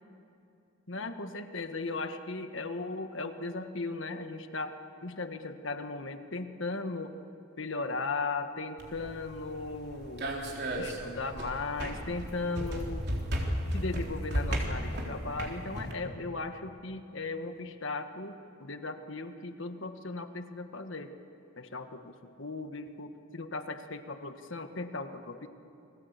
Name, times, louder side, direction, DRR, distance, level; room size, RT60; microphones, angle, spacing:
voice 1, 0.9-4.7 5.0-7.1 7.6-10.3 10.8-13.1 13.7-18.3 18.6-21.1 21.6-22.1 22.4-25.5, left 3 dB, 65° left, 7 dB, 1.6 m, -37 dB
sound 1, 8.8-15.9, equal, 55° right, 3.7 m, -35 dB
29.5 x 21.0 x 8.3 m, 2.7 s
head